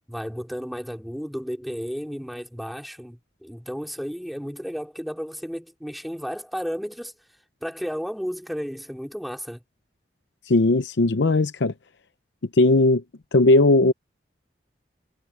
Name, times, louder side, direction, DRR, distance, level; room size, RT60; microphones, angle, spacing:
voice 1, 0.1-7.1 7.6-9.6, equal, ahead, 4.0 m, -33 dB
voice 2, 10.5-11.7 12.6-13.0 13.3-13.9, left 2 dB, 80° left, 0.7 m, -18 dB
head